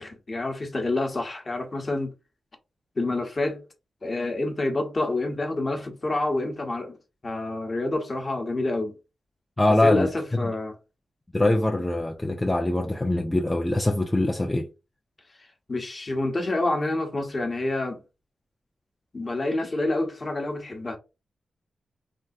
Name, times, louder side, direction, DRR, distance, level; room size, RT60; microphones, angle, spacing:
voice 1, 0.0-2.1 3.0-3.6 4.0-7.0 7.2-8.9 9.8-10.8 15.7-18.0 19.1-21.0, left 2 dB, 40° left, 0.8 m, -27 dB
voice 2, 9.6-10.1 10.4-10.5 11.3-14.7, left 1 dB, 15° left, 0.4 m, -23 dB
3.3 x 2.4 x 2.6 m
cardioid pair, 80°, 0 cm